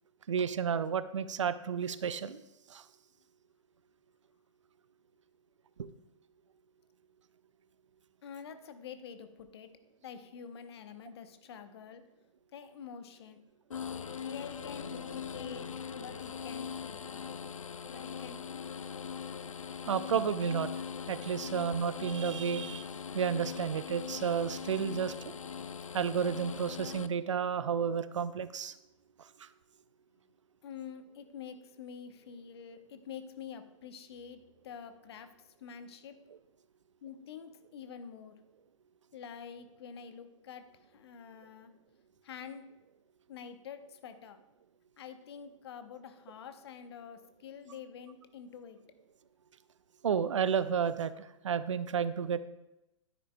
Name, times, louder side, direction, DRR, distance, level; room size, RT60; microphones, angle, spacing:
voice 1, 0.3-2.4 2.7-2.8 5.8-5.9 19.9-20.7 21.1-22.9 23.1-25.3 25.9-28.7 29.4-29.5 50.0-52.4, right 7 dB, 65° right, 14 dB, 0.5 m, -31 dB
voice 2, 8.2-9.7 10.0-12.0 12.5-13.4 14.2-17.2 17.9-18.7 30.6-35.3 35.6-36.2 37.0-38.4 39.1-40.6 40.9-41.7 42.2-42.6 43.3-44.4 45.0-48.8, left 7 dB, 50° left, 9 dB, 0.8 m, -47 dB
sound 1, 13.7-27.1, left 7 dB, 80° left, 0.4 m, -41 dB
12.0 x 9.9 x 2.2 m, 0.92 s
figure-of-eight pair, 115°, 17 cm